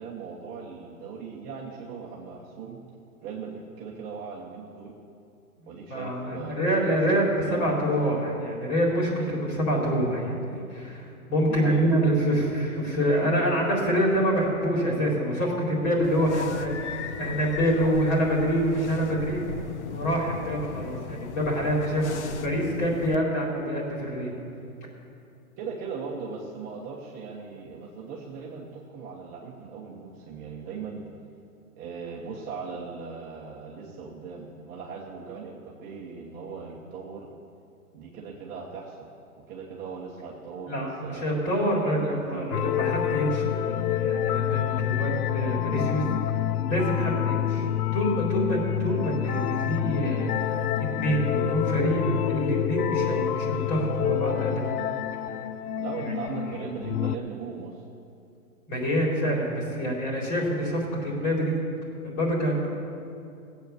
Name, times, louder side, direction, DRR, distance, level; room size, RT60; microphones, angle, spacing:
voice 1, 0.0-2.8 3.2-5.0 5.7-7.7 11.5-11.9 25.6-31.0 31.8-37.3 37.9-39.1 39.5-42.5 47.0-47.2 53.0-53.2 55.8-57.8, right 5 dB, 20° right, -4 dB, 1.3 m, -39 dB
voice 2, 5.9-19.4 19.9-24.3 40.7-46.4 46.7-47.4 47.9-50.6 51.0-54.7 56.0-56.7 58.7-61.6 62.0-62.7, equal, 30° left, -3 dB, 4.3 m, -26 dB
sound 1, 16.0-23.2, left 7 dB, 50° left, 0.8 m, -37 dB
sound 2, 42.5-57.2, left 11 dB, 80° left, 0.6 m, -27 dB
17.0 x 8.2 x 7.0 m, 2.6 s
hypercardioid pair, 150°, 44 cm